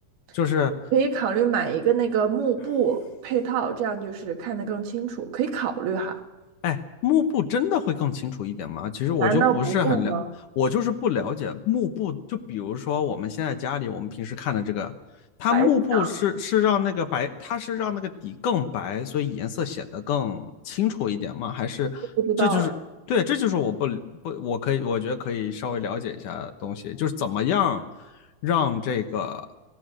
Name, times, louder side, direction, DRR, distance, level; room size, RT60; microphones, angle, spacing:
voice 1, 0.3-0.7 6.6-10.1 10.6-14.9 15.4-22.0 22.4-22.7 23.1-27.8 28.4-29.5, left 8 dB, 65° left, 6 dB, 2.4 m, -26 dB
voice 2, 0.9-6.2 9.2-10.3 15.5-16.1 22.2-22.8, right 7 dB, 90° right, 4 dB, 3.8 m, -25 dB
26.0 x 19.0 x 6.4 m, 1.1 s
omnidirectional pair, 4.3 m